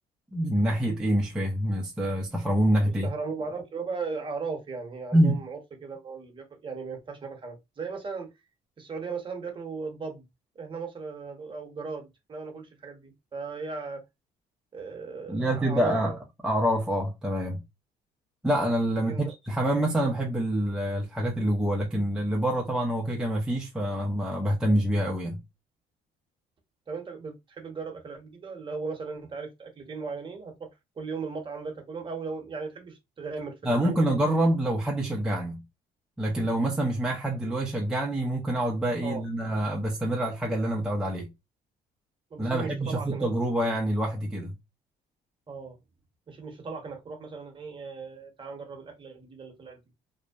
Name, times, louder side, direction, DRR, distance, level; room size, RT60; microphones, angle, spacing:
voice 1, 0.3-3.1 5.1-5.4 15.3-16.1 16.4-17.6 18.4-25.4 33.6-35.6 36.2-41.3 42.4-44.6, right 1 dB, 5° right, 0.4 m, -26 dB
voice 2, 2.8-8.3 8.8-10.2 10.5-14.0 14.7-16.2 18.9-19.3 26.9-30.7 31.0-34.0 39.0-39.2 42.3-43.2 45.5-45.8 46.3-49.8, right 4 dB, 30° right, 0.8 m, -37 dB
2.6 x 2.1 x 2.3 m
cardioid pair, 110°, 17 cm